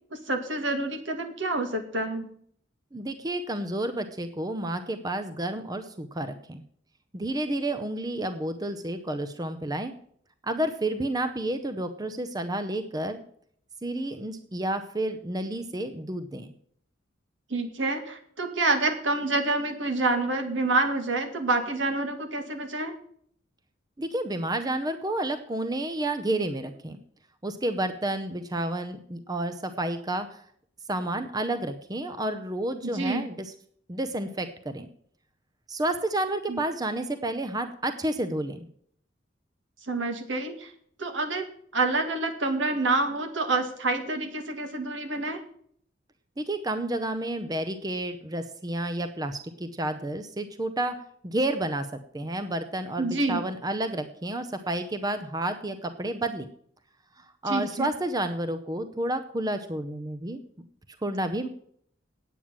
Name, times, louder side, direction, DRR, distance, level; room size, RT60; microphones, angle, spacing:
voice 1, 0.1-2.3 17.5-23.0 32.8-33.3 36.5-36.6 39.9-40.7 41.0-45.4 53.0-53.4 57.5-57.9, right 2 dB, 75° right, 5 dB, 1.9 m, -28 dB
voice 2, 2.9-6.6 7.1-9.9 10.4-13.2 13.8-16.5 24.0-27.0 27.4-30.4 30.9-33.5 33.9-34.9 35.7-38.7 46.4-51.9 52.1-56.5 57.2-60.4 61.0-61.5, right 1 dB, 20° right, 9 dB, 0.7 m, -30 dB
9.1 x 8.6 x 7.4 m, 0.63 s
head